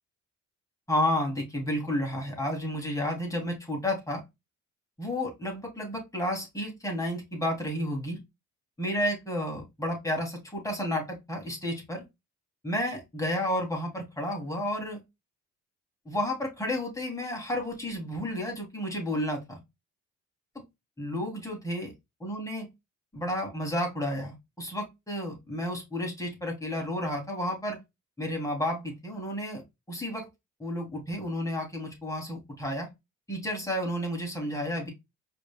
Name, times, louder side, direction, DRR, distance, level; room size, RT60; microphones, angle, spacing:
voice 1, 0.9-4.2 5.0-8.2 8.8-12.0 12.6-15.0 16.0-19.6 21.0-21.9 22.2-22.6 23.1-27.8 28.2-29.6 29.9-30.3 30.6-32.9 33.3-34.9, left 1 dB, 10° left, 0 dB, 2.8 m, -31 dB
4.9 x 3.6 x 2.2 m, 0.20 s
cardioid pair, 90°, 30 cm